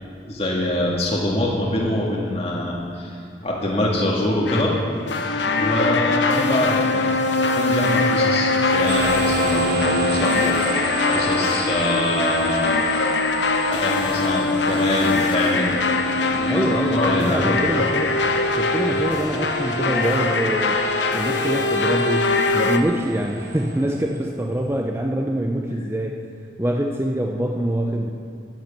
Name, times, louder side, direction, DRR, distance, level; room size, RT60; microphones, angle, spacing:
voice 1, 0.3-4.7 5.1-7.1 7.4-10.6 11.1-12.8 13.6-15.7 16.3-17.6 18.8-19.0, left 1 dB, 35° left, -3 dB, 1.7 m, -24 dB
sound 1, 4.5-22.8, left 3 dB, 75° left, 0.9 m, -22 dB
sound 2, 8.9-24.6, right 4 dB, 55° right, 1.4 m, -34 dB
voice 2, 16.5-18.2 18.5-20.9 21.1-26.2 26.6-28.1, right 1 dB, 15° right, 2 dB, 0.6 m, -25 dB
11.0 x 10.5 x 7.0 m, 2.3 s
head